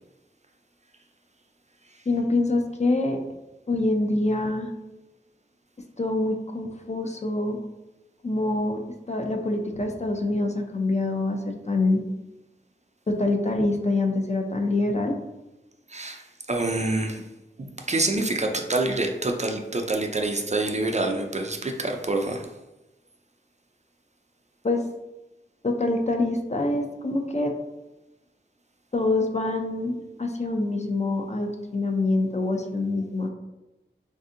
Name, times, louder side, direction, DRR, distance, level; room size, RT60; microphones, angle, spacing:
voice 1, 2.1-3.2 3.7-4.7 6.0-7.6 8.2-8.8 9.1-12.0 13.1-15.2 24.6-24.9 25.6-27.5 28.9-33.3, left 2 dB, 35° left, 3 dB, 0.4 m, -25 dB
voice 2, 15.9-17.3 17.6-22.5, right 2 dB, 35° right, 4 dB, 0.4 m, -27 dB
3.3 x 2.6 x 2.5 m, 0.99 s
wide cardioid pair, 50°, 20 cm